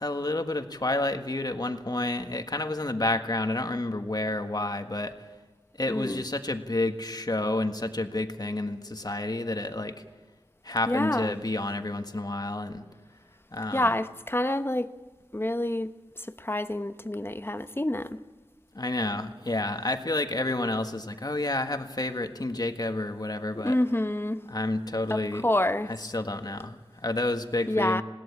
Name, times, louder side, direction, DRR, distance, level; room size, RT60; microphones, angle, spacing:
voice 1, 0.0-5.1 5.8-10.0 10.6-12.8 13.5-13.9 18.7-23.8 24.5-25.5 26.0-28.0, left 2 dB, 40° left, 7 dB, 1.6 m, -30 dB
voice 2, 5.9-6.2 10.9-11.3 13.7-14.9 15.3-18.2 23.5-24.5 25.1-25.9 27.7-28.0, left 1 dB, 25° left, 11 dB, 0.9 m, -28 dB
20.5 x 17.0 x 8.6 m, 1.2 s
wide cardioid pair, 40°, 10 cm